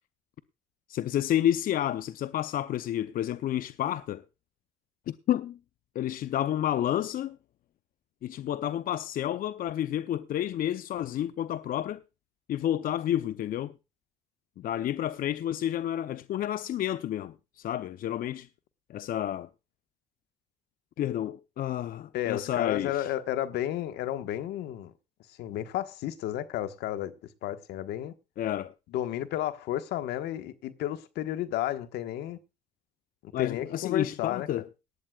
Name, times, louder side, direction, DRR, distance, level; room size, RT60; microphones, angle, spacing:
voice 1, 0.9-4.2 5.1-5.6 5.9-7.4 8.2-12.0 12.5-13.7 14.6-18.5 18.9-19.5 21.0-23.1 28.4-28.7 33.3-34.7, left 11 dB, 55° left, 0.6 m, -30 dB
voice 2, 22.1-24.9 25.4-27.1 27.4-28.1 28.9-32.4 33.2-34.5, left 12 dB, 80° left, 1.4 m, -32 dB
18.5 x 13.0 x 2.4 m
cardioid pair, 110°, 17 cm